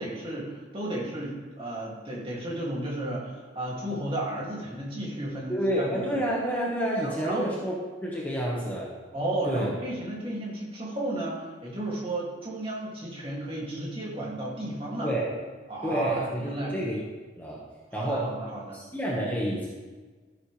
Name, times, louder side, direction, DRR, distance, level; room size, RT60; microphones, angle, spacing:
voice 1, 0.0-6.2 7.0-7.5 9.1-15.1 15.7-16.9 17.9-18.8, right 1 dB, 30° right, -4 dB, 2.6 m, -33 dB
voice 2, 5.5-8.9 9.4-9.7 15.0-15.3 15.8-17.0 17.4-17.6 17.9-18.3 18.7-19.7, equal, 10° left, -5 dB, 1.5 m, -29 dB
13.5 x 10.5 x 3.4 m, 1.4 s
head